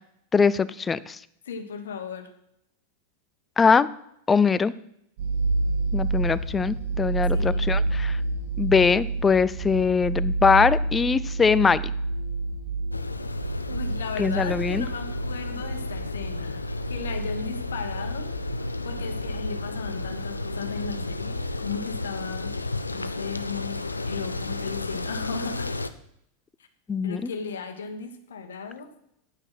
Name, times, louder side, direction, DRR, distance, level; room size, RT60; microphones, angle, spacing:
voice 1, 0.3-1.2 3.6-3.9 4.3-4.7 5.9-8.2 8.6-11.8 14.2-14.9 26.9-27.3, left 5 dB, 15° left, 17 dB, 0.4 m, -22 dB
voice 2, 1.4-2.3 7.3-7.7 13.7-18.3 18.8-21.4 21.6-22.5 22.9-25.7 27.0-28.9, left 5 dB, 65° left, 7 dB, 1.3 m, -36 dB
sound 1, 5.2-21.3, right 3 dB, 45° right, 3.8 m, -30 dB
sound 2, 12.9-25.9, left 2 dB, 80° left, 0.6 m, -33 dB
9.0 x 8.9 x 5.8 m, 0.75 s
figure-of-eight pair, 90°, 0 cm